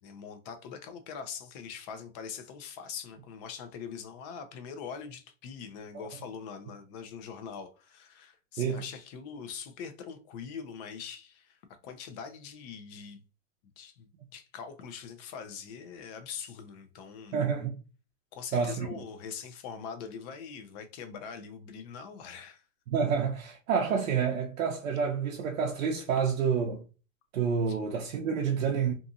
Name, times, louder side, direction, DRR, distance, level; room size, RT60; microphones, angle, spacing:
voice 1, 0.0-13.2 13.8-17.4 18.3-22.7 27.7-27.8, left 6 dB, 35° left, 0.5 m, -43 dB
voice 2, 17.3-17.8 18.5-19.0 22.9-26.8 27.3-28.9, right 6 dB, 85° right, 0.7 m, -28 dB
2.6 x 2.4 x 2.6 m
hypercardioid pair, 130°, 40 cm